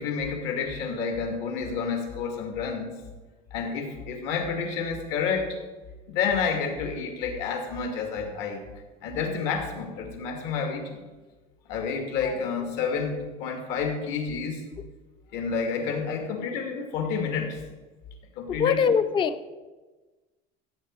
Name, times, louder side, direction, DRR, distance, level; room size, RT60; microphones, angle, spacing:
voice 1, 0.0-3.0 3.5-5.6 6.1-8.6 9.0-11.0 11.7-14.6 15.3-17.6 18.4-18.8, left 5 dB, 65° left, 3 dB, 2.7 m, -29 dB
voice 2, 18.6-19.5, left 6 dB, 25° left, 12 dB, 0.6 m, -23 dB
15.5 x 8.7 x 4.9 m, 1.2 s
cardioid pair, 175°, 19 cm